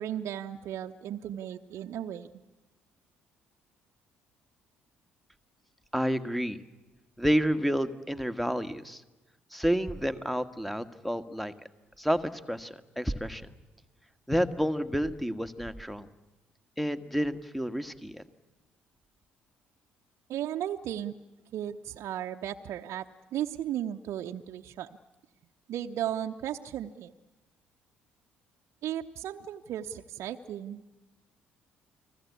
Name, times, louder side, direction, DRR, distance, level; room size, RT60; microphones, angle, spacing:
voice 1, 0.0-2.3 20.3-21.1 21.5-25.0 25.7-27.1 28.8-31.0, right 11 dB, 60° right, 4 dB, 0.9 m, -35 dB
voice 2, 5.9-6.6 7.2-9.0 9.5-11.5 12.0-13.4 14.3-16.1 16.8-18.2, equal, ahead, 11 dB, 1.8 m, -29 dB
30.0 x 20.5 x 8.5 m, 1.1 s
hypercardioid pair, 50°, 5 cm